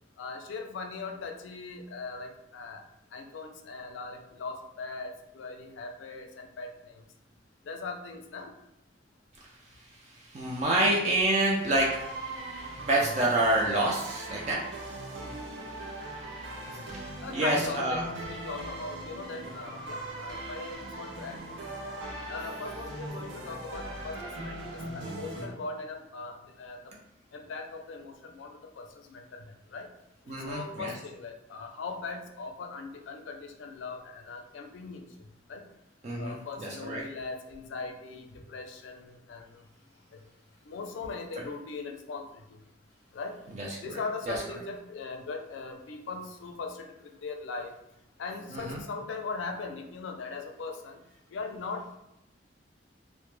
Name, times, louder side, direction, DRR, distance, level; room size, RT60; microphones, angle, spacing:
voice 1, 0.2-2.8 3.1-7.0 7.7-8.5 17.2-21.6 22.3-26.9 27.3-29.9 30.3-35.6 36.2-39.6 40.6-42.6 43.1-43.4 43.8-47.7 48.2-51.0 51.3-52.0, left 4 dB, 85° left, 4 dB, 0.4 m, -40 dB
voice 2, 10.0-12.1 12.8-14.6 16.7-18.0 25.4-25.5 30.3-30.9 36.0-37.0 41.4-41.5 43.6-43.8 44.3-44.4 48.5-48.8, right 1 dB, 35° right, -3 dB, 0.4 m, -28 dB
intro loop, 11.7-25.4, right 2 dB, 85° right, 0.6 m, -40 dB
2.1 x 2.1 x 3.0 m, 0.85 s
head